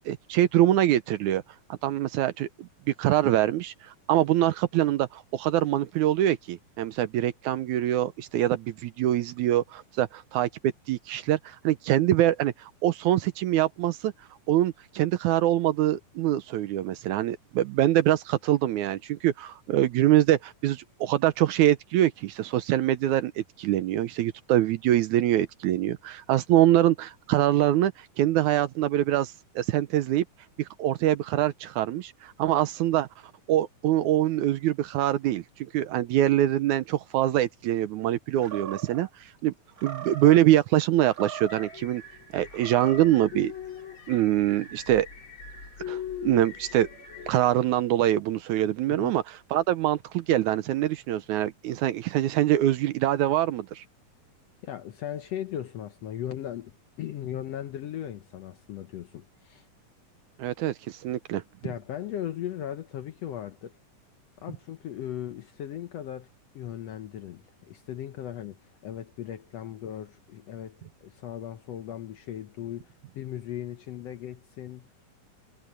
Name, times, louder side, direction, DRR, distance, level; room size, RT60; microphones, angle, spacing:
voice 1, 0.1-1.4 1.8-2.7 3.0-3.7 4.1-14.1 14.5-27.9 28.2-30.3 30.6-33.1 33.5-39.1 39.4-39.5 39.8-42.0 42.3-43.5 44.1-45.1 45.9-46.9 47.3-53.8 60.4-61.4, right 13 dB, 75° right, 2.0 m, -24 dB
Animal, 38.4-39.1 39.8-40.4 41.0-41.8 42.5-43.2, right 8 dB, 45° right, 1.2 m, -39 dB
sound 1, 41.5-47.4, left 8 dB, 40° left, 4.6 m, -41 dB
voice 2, 54.6-59.7 61.6-63.8 64.4-66.3 66.5-74.9, left 11 dB, 70° left, 1.6 m, -37 dB
omnidirectional pair, 3.8 m